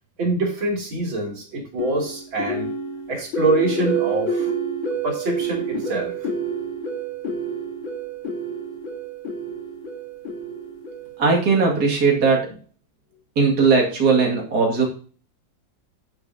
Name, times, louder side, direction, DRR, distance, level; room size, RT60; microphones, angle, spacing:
voice 1, 0.2-2.7 3.1-4.5 5.0-6.1, right 2 dB, 85° right, -1 dB, 3.6 m, -25 dB
sound 1, 1.8-11.9, right 3 dB, 80° left, 2.7 m, -28 dB
voice 2, 11.2-12.6 13.4-14.8, right 4 dB, 50° right, -2 dB, 2.8 m, -18 dB
10.0 x 7.8 x 2.8 m, 0.41 s
omnidirectional pair, 2.1 m